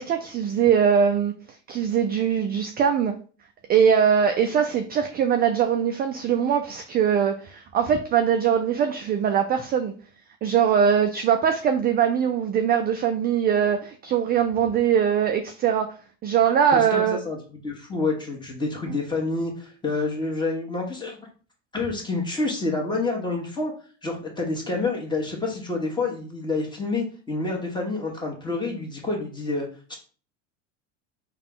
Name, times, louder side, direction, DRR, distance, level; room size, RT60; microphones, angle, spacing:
voice 1, 0.0-1.3 1.7-3.1 3.7-9.9 10.4-15.9 16.2-17.2, right 8 dB, 25° right, 0.3 m, -21 dB
voice 2, 16.7-21.2 21.7-23.7 24.0-29.9, left 3 dB, 10° left, 1.3 m, -28 dB
3.7 x 2.3 x 3.7 m
hypercardioid pair, 90°, 38 cm